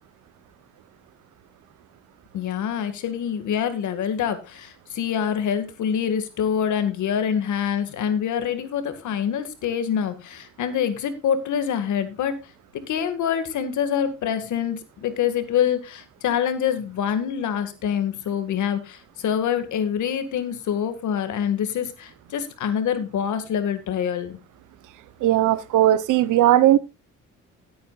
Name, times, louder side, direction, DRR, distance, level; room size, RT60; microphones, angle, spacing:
voice 1, 2.3-12.4 12.7-24.4, left 8 dB, 75° left, 1.9 m, -25 dB
voice 2, 25.2-26.8, right 13 dB, 85° right, 0.8 m, -17 dB
17.5 x 8.6 x 2.4 m
cardioid pair, 90°, 30 cm